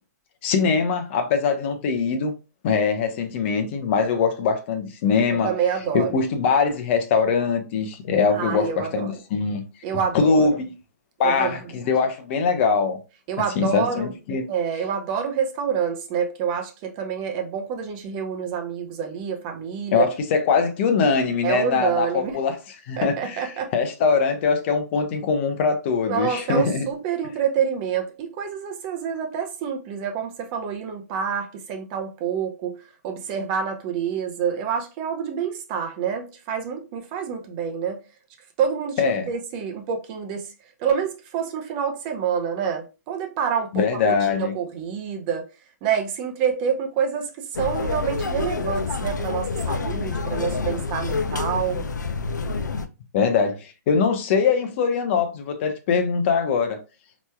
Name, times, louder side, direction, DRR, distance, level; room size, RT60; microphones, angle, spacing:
voice 1, 0.4-2.3 2.6-5.5 5.9-9.6 10.1-10.7 11.2-13.0 13.6-14.4 19.9-22.6 22.9-26.9 39.0-39.3 43.7-44.5 53.1-56.8, left 5 dB, 40° left, 0.7 m, -22 dB
voice 2, 5.3-6.1 8.3-9.2 9.8-10.5 11.2-11.6 13.3-14.1 14.5-20.1 21.4-22.4 23.0-23.7 26.1-32.8 33.0-38.0 38.6-40.5 40.8-45.5 45.8-51.8, right 7 dB, 35° right, 0.7 m, -27 dB
sound 1, 47.5-52.9, left 4 dB, 90° left, 0.5 m, -27 dB
4.3 x 3.0 x 2.3 m
hypercardioid pair, 135°, 9 cm